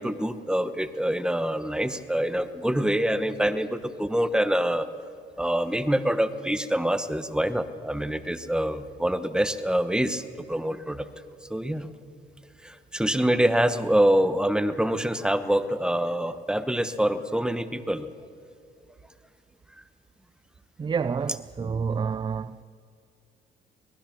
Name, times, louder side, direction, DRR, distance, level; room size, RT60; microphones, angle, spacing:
voice 1, 0.0-4.9 5.4-10.2 10.5-11.1 11.5-11.9 12.6-18.1, right 1 dB, 5° right, 1.1 m, -25 dB
voice 2, 20.8-22.6, right 6 dB, 25° right, 0.4 m, -29 dB
25.0 x 19.0 x 6.0 m
cardioid pair, 90°, 20 cm